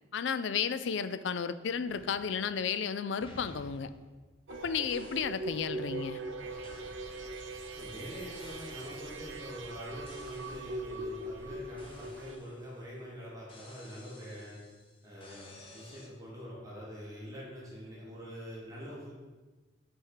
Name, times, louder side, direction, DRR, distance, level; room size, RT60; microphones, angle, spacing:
voice 1, 0.1-3.9 4.5-6.2, left 6 dB, 75° left, 13 dB, 0.4 m, -33 dB
sound 1, 1.9-2.8 3.2-4.5 4.9-5.4 6.6-6.9 8.3-8.9 10.1-10.8 11.8-12.9 13.5-16.1, left 2 dB, 30° left, 1.2 m, -55 dB
sound 2, 4.5-12.4, right 2 dB, 90° right, 0.9 m, -41 dB
sound 3, 6.4-12.3, equal, 10° left, 0.5 m, -54 dB
voice 2, 7.7-14.6 15.0-19.1, equal, 20° right, -6 dB, 1.7 m, -45 dB
6.4 x 4.5 x 6.5 m, 1.3 s
head